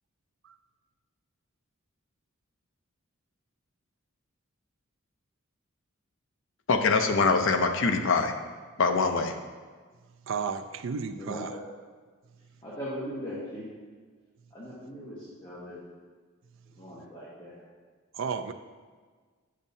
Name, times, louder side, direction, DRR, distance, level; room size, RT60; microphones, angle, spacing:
voice 1, 6.7-8.3 8.8-9.3, left 4 dB, 65° left, 5 dB, 0.6 m, -23 dB
voice 2, 10.3-11.5 18.1-18.5, right 5 dB, 65° right, 10 dB, 0.4 m, -33 dB
voice 3, 11.1-11.6 12.6-13.8 14.5-15.8 16.7-17.6, equal, 25° left, -9 dB, 1.2 m, -39 dB
8.6 x 6.3 x 2.7 m, 1.5 s
head